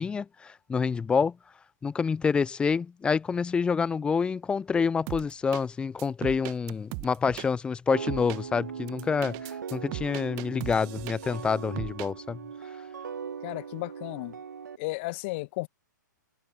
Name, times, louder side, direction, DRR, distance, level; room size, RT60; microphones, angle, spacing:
voice 1, 0.0-1.4 1.8-12.4, left 5 dB, 10° left, 0.8 m, -27 dB
sound 1, 5.1-5.6 6.0-7.5 8.1-8.4 8.9-11.4 11.8-12.1, right 31 dB, 30° right, 1.9 m, -38 dB
sound 2, 7.9-14.8, right 7 dB, 65° right, 2.2 m, -40 dB
voice 2, 13.4-14.4 14.8-15.7, left 23 dB, 35° left, 1.9 m, -34 dB
figure-of-eight pair, 120°, 11 cm